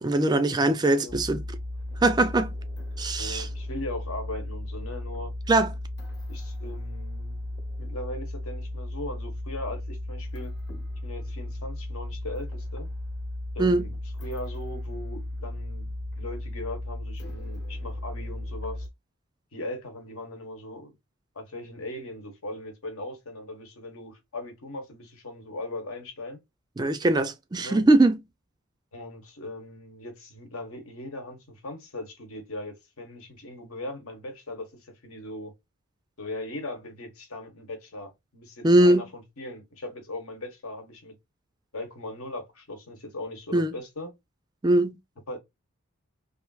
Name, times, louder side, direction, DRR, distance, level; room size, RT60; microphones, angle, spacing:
voice 1, 0.0-1.4 2.0-2.5 3.0-3.5 5.5-5.7 13.6-13.9 26.8-28.2 38.6-39.1 43.5-43.7 44.6-45.0, right 2 dB, 20° right, 0.3 m, -21 dB
sound 1, 1.1-18.9, left 1 dB, 55° left, 1.0 m, -35 dB
voice 2, 3.2-5.3 6.3-7.4 7.8-10.5 11.0-12.9 13.5-13.9 14.2-18.9 19.5-21.0 21.3-26.4 27.6-27.8 28.9-35.5 36.2-41.2 41.7-44.1 45.3-45.4, left 1 dB, 80° left, 1.1 m, -39 dB
3.4 x 2.5 x 2.3 m
head